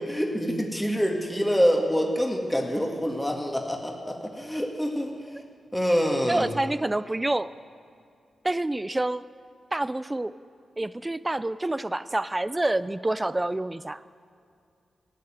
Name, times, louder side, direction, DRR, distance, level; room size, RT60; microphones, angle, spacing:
voice 1, 0.0-5.1 5.7-6.5, equal, 10° left, 1 dB, 2.0 m, -26 dB
voice 2, 6.3-7.5 8.4-9.3 9.7-10.3 10.8-14.0, right 2 dB, 20° right, 16 dB, 0.5 m, -27 dB
15.0 x 6.8 x 9.3 m, 2.4 s
supercardioid pair, 45°, 0 cm